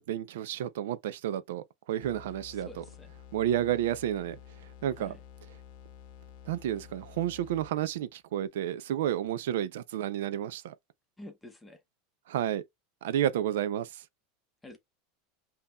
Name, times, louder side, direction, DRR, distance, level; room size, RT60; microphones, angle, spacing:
voice 1, 0.0-2.8 3.3-4.4 4.8-5.2 6.5-10.7 12.3-12.6 13.0-14.0, right 11 dB, 90° right, 0.4 m, -31 dB
sound 1, 2.0-8.1, left 10 dB, 55° left, 0.7 m, -51 dB
voice 2, 2.5-3.1 5.0-5.2 11.2-11.8 14.6-14.8, left 1 dB, 5° left, 0.8 m, -48 dB
5.3 x 2.8 x 2.2 m
supercardioid pair, 170°, 0 cm